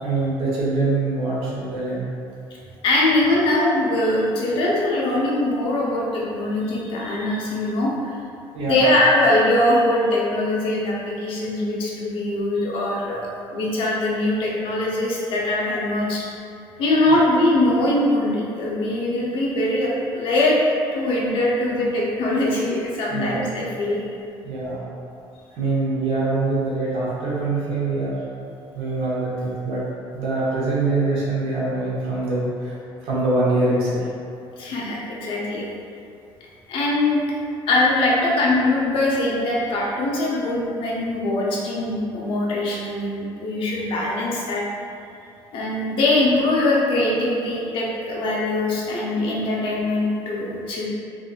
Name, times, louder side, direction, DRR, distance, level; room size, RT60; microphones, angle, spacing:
voice 1, 0.0-2.0 8.5-8.9 17.2-17.3 23.1-23.5 24.4-24.9 25.5-28.1 28.7-29.8 30.1-32.7 33.0-34.0, right 2 dB, 75° right, -8 dB, 1.1 m, -24 dB
voice 2, 2.8-8.1 8.6-16.2 16.8-20.6 20.9-24.1 34.6-35.7 36.7-37.2 37.7-44.6 45.5-50.9, left 1 dB, 65° left, -5 dB, 0.7 m, -22 dB
3.6 x 2.6 x 2.4 m, 2.5 s
cardioid pair, 130°, 10 cm